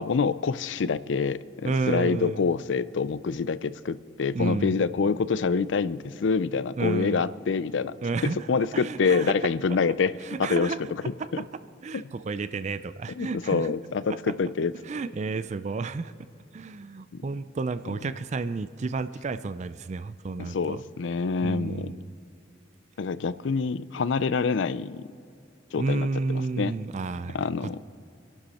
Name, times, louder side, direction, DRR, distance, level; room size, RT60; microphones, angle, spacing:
voice 1, 0.0-7.9 8.2-10.1 10.4-10.7 13.2-14.7 17.1-17.2 20.4-21.9 23.0-25.0 25.7-26.1 26.6-26.7 27.3-27.8, left 5 dB, 70° left, 16 dB, 0.5 m, -26 dB
voice 2, 1.6-2.4 4.3-4.8 6.8-7.2 8.0-9.3 10.2-10.8 11.2-11.3 11.8-13.7 14.8-16.1 16.5-20.8 21.4-22.1 25.8-27.8, right 3 dB, 40° right, 13 dB, 0.4 m, -31 dB
25.5 x 11.5 x 4.3 m, 2.5 s
head